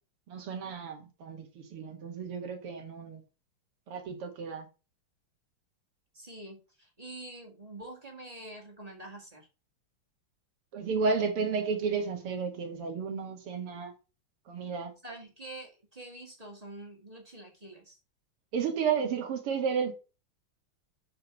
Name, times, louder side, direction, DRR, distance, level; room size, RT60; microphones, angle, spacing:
voice 1, 0.3-3.2 3.9-4.7 10.7-13.9 14.5-14.9 18.5-19.9, right 5 dB, 85° right, 2.6 m, -32 dB
voice 2, 6.1-9.5 15.0-18.0, right 1 dB, 15° right, 2.1 m, -46 dB
7.5 x 4.9 x 5.9 m
omnidirectional pair, 2.4 m